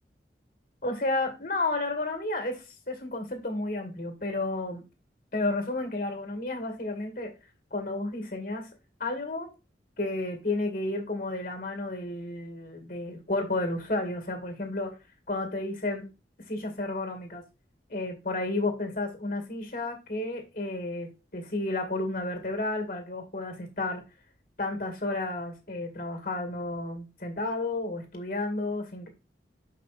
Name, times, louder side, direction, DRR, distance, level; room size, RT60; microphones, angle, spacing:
voice 1, 0.8-4.8 5.3-7.3 7.7-8.7 9.0-9.5 10.0-14.9 15.3-16.1 16.4-17.4 17.9-24.0 24.6-29.1, left 2 dB, 50° left, 2.1 m, -32 dB
6.6 x 5.5 x 4.2 m
head